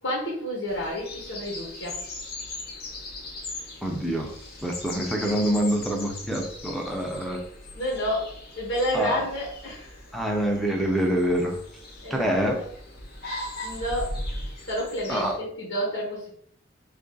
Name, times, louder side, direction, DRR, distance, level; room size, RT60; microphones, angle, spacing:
voice 1, 0.0-2.0 7.8-8.3 8.5-10.0 12.0-12.6 13.6-14.2 14.6-16.3, equal, 90° left, -5 dB, 1.1 m, -30 dB
sound 1, 0.7-15.4, left 1 dB, 55° left, 0.8 m, -39 dB
voice 2, 3.8-4.3 4.6-7.4 8.9-9.2 10.1-11.6 12.1-12.6 15.1-15.4, equal, ahead, 1 dB, 0.5 m, -26 dB
3.0 x 2.5 x 3.8 m, 0.64 s
head